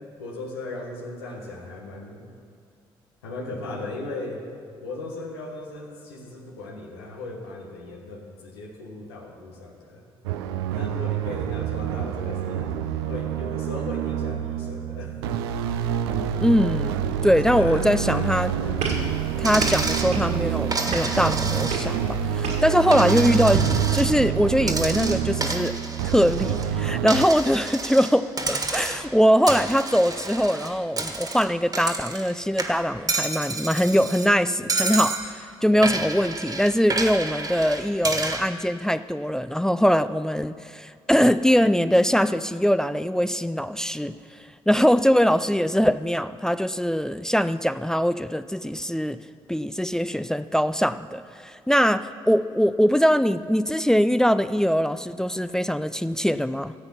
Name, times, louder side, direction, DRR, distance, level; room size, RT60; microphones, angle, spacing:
voice 1, 0.2-2.2 3.2-4.4 4.8-10.0 10.7-12.7 13.0-15.2 17.4-18.8, left 2 dB, 90° left, 0 dB, 1.4 m, -37 dB
sound 1, 10.2-27.3, right 10 dB, 85° right, 0.5 m, -27 dB
voice 2, 16.4-17.0 17.2-18.5 19.4-25.8 26.0-44.1 44.7-49.2 49.5-56.7, equal, 5° left, 13 dB, 0.4 m, -22 dB
sound 2, 18.8-23.9, right 2 dB, 65° right, 1.9 m, -32 dB
Coin (dropping), 19.4-20.1 20.7-22.0 22.4-24.1 24.6-26.7 27.1-28.1 28.4-29.1 29.5-32.3 32.6-34.3 34.7-35.2 35.8-38.4, right 3 dB, 30° right, 1.6 m, -29 dB
13.5 x 7.9 x 5.7 m, 2.3 s
hypercardioid pair, 45°, 13 cm